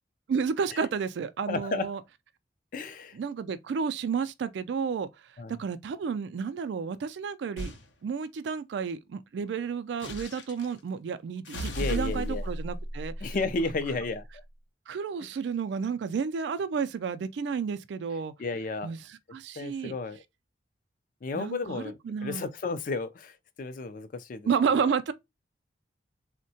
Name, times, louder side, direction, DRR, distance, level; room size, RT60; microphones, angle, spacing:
voice 1, 0.3-2.0 3.1-5.1 5.6-7.7 8.0-13.4 14.9-18.3 18.8-19.9 21.3-22.5 24.4-25.1, right 6 dB, 75° right, 0.3 m, -31 dB
voice 2, 1.5-1.9 2.7-3.2 5.4-5.5 11.8-12.4 13.2-14.2 15.2-15.3 18.4-18.9 19.6-20.2 21.2-24.9, left 3 dB, 50° left, 0.4 m, -33 dB
sound 1, 7.6-7.9 10.0-10.7 11.5-14.1, equal, 90° left, 0.6 m, -35 dB
3.6 x 2.1 x 2.6 m
head